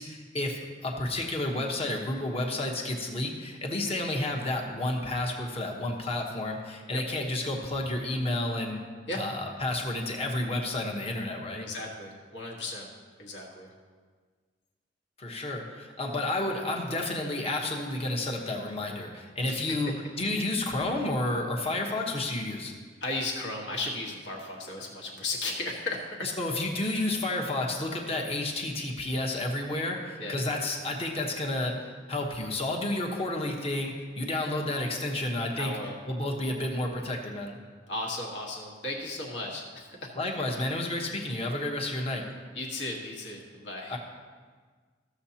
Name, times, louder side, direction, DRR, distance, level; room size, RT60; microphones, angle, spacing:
voice 1, 0.0-8.8 9.1-11.7 15.2-22.7 26.2-35.7 36.1-37.5 40.2-42.3 43.9-44.0, left 2 dB, 30° left, 0 dB, 1.1 m, -31 dB
voice 2, 11.6-12.9 13.2-13.7 19.5-19.9 23.0-26.3 26.8-27.2 30.2-30.4 35.6-36.0 37.9-40.1 42.5-44.0, left 2 dB, 65° left, -1 dB, 1.5 m, -35 dB
14.5 x 7.1 x 2.9 m, 1.6 s
head